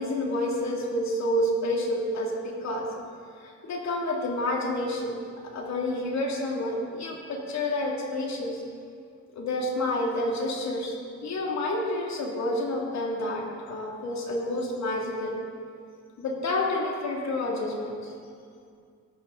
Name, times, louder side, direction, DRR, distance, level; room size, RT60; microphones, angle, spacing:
voice 1, 0.0-2.9 3.4-5.2 5.4-8.6 9.3-10.9 11.2-15.4 16.2-18.1, left 1 dB, 65° left, -1 dB, 3.1 m, -29 dB
18.5 x 13.5 x 4.2 m, 2.3 s
cardioid pair, 90°, 30 cm